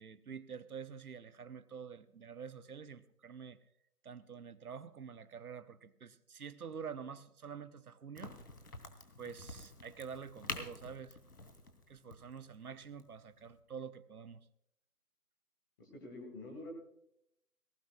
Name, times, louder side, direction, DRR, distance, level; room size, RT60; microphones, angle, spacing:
voice 1, 0.0-3.6 4.0-8.4 9.2-11.2 11.9-14.4, right 6 dB, 70° right, 12 dB, 1.0 m, -47 dB
Crack, 8.2-13.6, left 2 dB, 75° left, 3.0 m, -48 dB
voice 2, 15.8-16.7, left 2 dB, 15° left, 2 dB, 1.8 m, -47 dB
19.5 x 18.0 x 2.3 m, 0.75 s
figure-of-eight pair, 155°, 46 cm